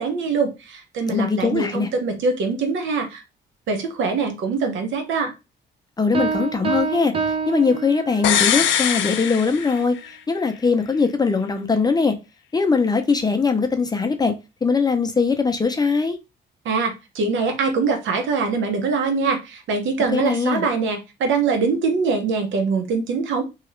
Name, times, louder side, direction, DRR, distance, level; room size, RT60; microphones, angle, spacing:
voice 1, 0.0-3.2 3.7-5.3 16.6-23.4, right 4 dB, 75° right, 0.8 m, -23 dB
voice 2, 1.1-1.9 6.0-7.1 7.5-10.0 10.3-12.2 12.5-14.3 14.6-16.2 20.1-20.6, left 4 dB, 20° left, 0.5 m, -21 dB
Piano, 6.1-8.5, right 5 dB, 30° right, 0.5 m, -26 dB
sound 1, 8.2-10.2 10.5-10.6, left 9 dB, 70° left, 0.5 m, -22 dB
2.9 x 2.4 x 3.1 m
cardioid pair, 90°, 20 cm